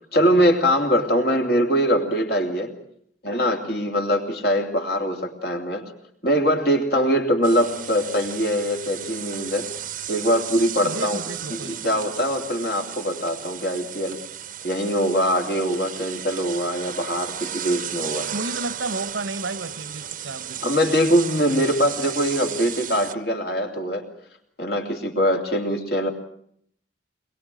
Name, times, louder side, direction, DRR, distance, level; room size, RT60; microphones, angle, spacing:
voice 1, 0.1-2.7 3.2-5.9 6.2-9.7 10.1-11.2 11.5-14.2 14.6-18.3 20.6-24.1 24.6-26.1, equal, 55° left, 3 dB, 3.1 m, -22 dB
sound 1, 7.4-23.1, right 10 dB, 45° right, 0.9 m, -34 dB
voice 2, 10.8-12.0 18.3-20.6, right 2 dB, 85° right, 14 dB, 1.2 m, -32 dB
22.5 x 22.0 x 7.7 m, 0.67 s
head